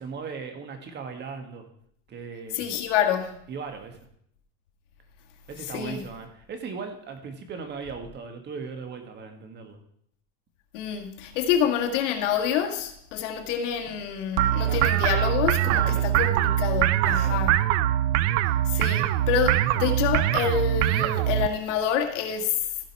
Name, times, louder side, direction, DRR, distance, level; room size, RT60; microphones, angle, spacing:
voice 1, 0.0-1.7 2.1-2.6 3.5-4.0 5.5-9.8 14.6-14.9 15.6-16.1 17.0-17.4, right 5 dB, 30° right, 1.7 m, -38 dB
voice 2, 2.5-3.4 5.7-6.0 10.7-17.6 18.7-22.6, left 8 dB, 80° left, 1.9 m, -27 dB
sound 1, 14.4-21.5, right 12 dB, 70° right, 0.7 m, -23 dB
15.0 x 5.3 x 4.7 m
supercardioid pair, 140°, 36 cm